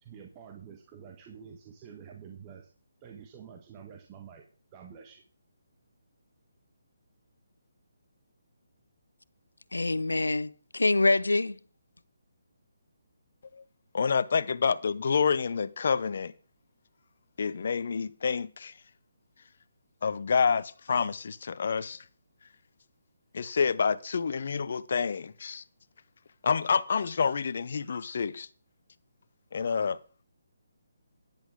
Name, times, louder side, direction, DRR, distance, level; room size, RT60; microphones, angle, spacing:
voice 1, 0.0-2.7 3.0-4.4 4.7-5.2, right 7 dB, 25° right, 1.5 m, -48 dB
voice 2, 9.7-11.6, left 2 dB, 85° left, 0.6 m, -25 dB
voice 3, 13.9-16.3 17.4-18.7 20.0-22.0 23.3-25.6 26.4-28.5 29.5-30.0, left 5 dB, 55° left, 0.8 m, -28 dB
13.5 x 10.5 x 3.8 m
figure-of-eight pair, 145°, 0 cm